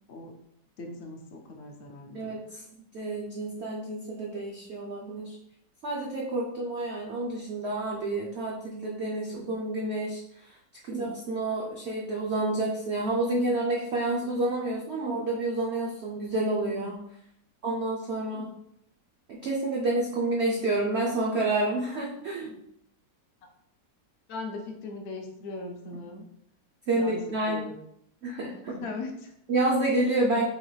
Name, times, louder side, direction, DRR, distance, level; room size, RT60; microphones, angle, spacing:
voice 1, 0.8-2.4 23.4-23.5 24.3-26.2 26.9-27.8 28.8-29.3, left 3 dB, 70° left, 2 dB, 0.6 m, -39 dB
voice 2, 2.1-2.6 2.9-5.4 5.8-10.5 10.9-17.0 17.6-18.5 19.3-22.5 26.9-27.6 28.2-28.9 29.5-30.5, right 2 dB, 70° right, -2 dB, 0.6 m, -29 dB
3.8 x 2.9 x 3.1 m, 0.76 s
omnidirectional pair, 1.8 m